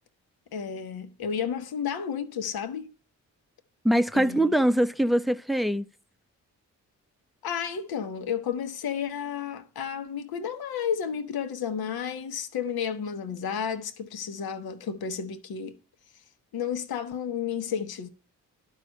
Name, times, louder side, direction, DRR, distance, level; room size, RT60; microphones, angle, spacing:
voice 1, 0.5-2.9 4.1-4.6 7.4-15.8 16.5-18.1, left 7 dB, 65° left, 1.3 m, -32 dB
voice 2, 3.8-5.8, right 1 dB, ahead, 0.7 m, -23 dB
11.5 x 5.0 x 6.4 m
supercardioid pair, 45°, 39 cm